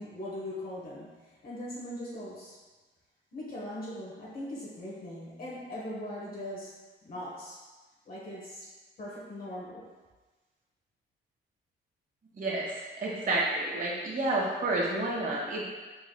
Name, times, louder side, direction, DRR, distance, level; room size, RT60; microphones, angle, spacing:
voice 1, 0.0-2.6 3.3-6.7 7.0-7.6 8.1-8.7 9.0-9.9, left 1 dB, 50° left, -6 dB, 1.1 m, -40 dB
voice 2, 12.4-15.7, right 2 dB, 45° right, -4 dB, 1.4 m, -30 dB
4.6 x 4.0 x 2.3 m, 1.3 s
cardioid pair, 90°, 20 cm